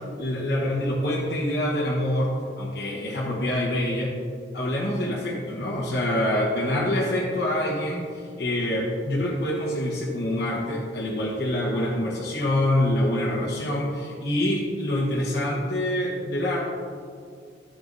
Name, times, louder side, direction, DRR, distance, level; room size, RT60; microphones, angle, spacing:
voice 1, 0.2-4.2 4.5-16.6, left 1 dB, 65° left, -5 dB, 1.1 m, -26 dB
11.0 x 7.0 x 2.6 m, 2.2 s
head